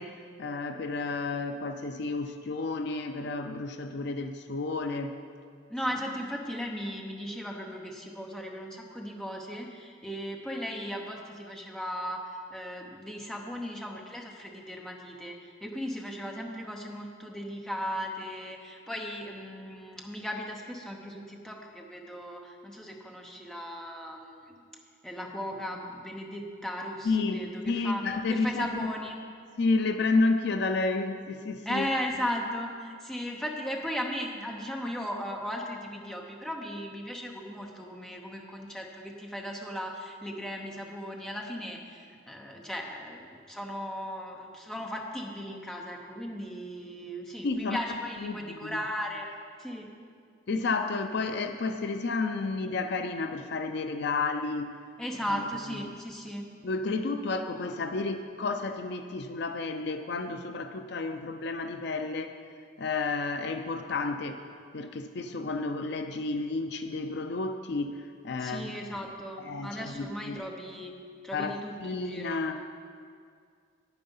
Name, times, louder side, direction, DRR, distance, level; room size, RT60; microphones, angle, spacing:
voice 1, 0.0-5.2 27.1-28.7 29.6-31.9 47.4-47.8 48.2-48.8 50.5-54.7 55.3-55.4 56.6-62.4 62.8-64.4 64.7-68.7 69.5-70.4 71.3-71.5 71.8-72.6, left 3 dB, 55° left, 7 dB, 0.4 m, -31 dB
voice 2, 5.7-24.6 25.0-29.2 31.6-49.3 49.6-49.9 55.0-56.5 68.4-70.9 71.2-72.4, equal, 5° left, 0 dB, 0.8 m, -37 dB
9.4 x 9.0 x 5.5 m, 2.2 s
head